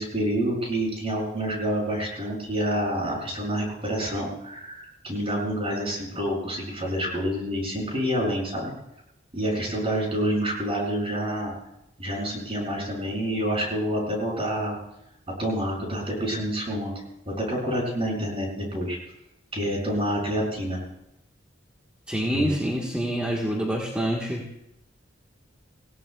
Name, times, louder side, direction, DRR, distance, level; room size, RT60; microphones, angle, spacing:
voice 1, 0.0-8.7 9.3-11.5 12.0-14.8 15.4-16.9 17.3-19.0 19.5-20.8 22.3-22.5, equal, 30° right, -3 dB, 7.3 m, -28 dB
voice 2, 22.1-24.4, equal, 5° right, -3 dB, 1.4 m, -26 dB
27.5 x 16.5 x 2.3 m, 0.86 s
head